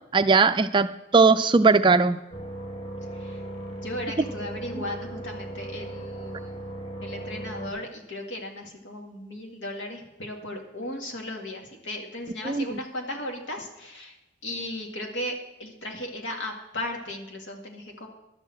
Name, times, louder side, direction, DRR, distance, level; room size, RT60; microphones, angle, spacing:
voice 1, 0.1-0.9 1.1-2.2 12.4-12.8, right 4 dB, 25° right, 11 dB, 0.4 m, -19 dB
sound 1, 2.3-7.7, right 1 dB, 30° left, 1.6 m, -37 dB
voice 2, 3.7-6.7 7.0-14.2 14.4-18.1, left 1 dB, 85° left, 2 dB, 2.1 m, -36 dB
11.5 x 6.7 x 7.6 m, 0.95 s
head